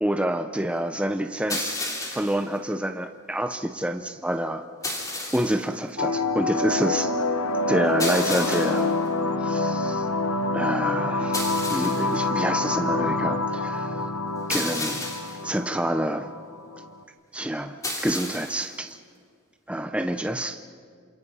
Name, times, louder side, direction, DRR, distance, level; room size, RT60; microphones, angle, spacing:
voice 1, 0.0-1.8 2.1-4.6 5.3-7.1 7.7-9.0 9.4-10.1 10.5-11.4 11.7-14.1 14.5-15.1 15.4-16.3 17.3-19.0 19.7-20.6, right 1 dB, 5° right, 7 dB, 0.7 m, -27 dB
sound 1, 1.5-2.4 4.8-5.7 8.0-8.9 11.3-12.2 14.5-15.4 17.8-18.7, left 2 dB, 15° left, 3.2 m, -32 dB
sound 2, 6.0-17.0, left 3 dB, 85° left, 1.2 m, -26 dB
27.5 x 27.0 x 5.6 m, 2.1 s
head